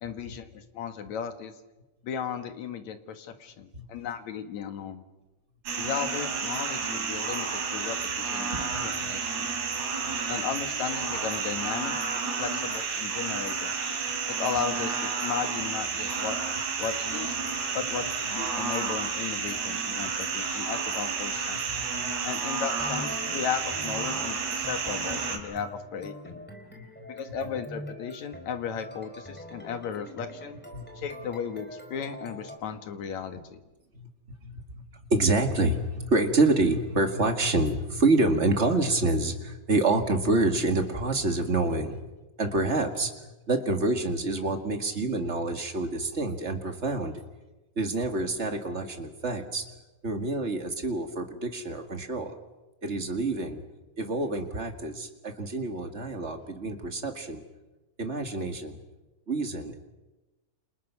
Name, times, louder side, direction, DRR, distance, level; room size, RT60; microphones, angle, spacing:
voice 1, 0.0-1.5 2.0-5.0 5.8-9.5 10.3-11.9 12.4-13.7 14.4-16.4 16.8-17.4 17.7-21.6 22.2-26.4 27.1-30.6 31.0-33.6, left 7 dB, 70° left, 8 dB, 2.9 m, -35 dB
voice 2, 3.7-4.1 8.5-9.1 21.7-22.1 26.7-27.1 30.7-30.8 33.9-34.1 34.4-42.1 42.4-47.1 47.8-52.4 52.8-53.6 54.0-57.4 58.0-58.8 59.3-59.8, right 2 dB, 25° right, 5 dB, 1.8 m, -27 dB
sound 1, 5.7-25.4, right 5 dB, 70° right, 4.3 m, -31 dB
sound 2, 22.7-32.6, equal, 5° left, 3.7 m, -44 dB
28.5 x 28.0 x 6.1 m, 1.1 s
omnidirectional pair, 3.5 m